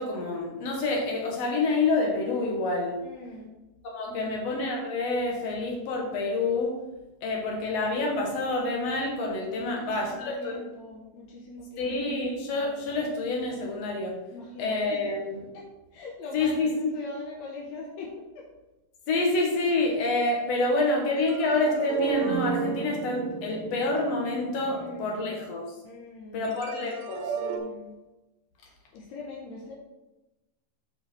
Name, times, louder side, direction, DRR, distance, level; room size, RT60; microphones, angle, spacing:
voice 1, 0.0-3.0 3.9-6.7 7.2-10.5 11.8-14.2 14.6-15.4 16.3-16.7 19.1-25.6 26.3-27.2, left 2 dB, 55° left, 0 dB, 1.9 m, -27 dB
voice 2, 3.0-3.5 4.0-4.3 9.6-12.2 14.3-15.1 15.5-18.5 20.6-21.3 24.7-25.3 25.8-26.5 27.3-27.9 28.9-29.7, left 2 dB, 75° left, -2 dB, 1.6 m, -42 dB
sound 1, 21.2-25.5 26.5-27.6, right 6 dB, 85° right, 2.7 m, -33 dB
6.5 x 5.5 x 4.3 m, 1.0 s
omnidirectional pair, 4.4 m